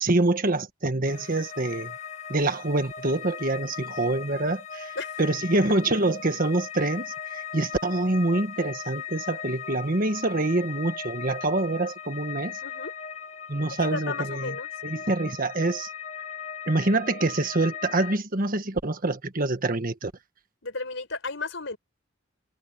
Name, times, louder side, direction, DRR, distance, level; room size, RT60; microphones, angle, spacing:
voice 1, 0.0-2.0 2.3-12.6 13.5-14.5 14.8-15.9 16.7-20.1, right 2 dB, 45° right, 1.5 m, -26 dB
sound 1, 1.0-18.2, left 7 dB, 35° left, 1.9 m, -38 dB
voice 2, 12.6-12.9 13.7-14.7 20.6-21.8, left 3 dB, 70° left, 5.6 m, -34 dB
head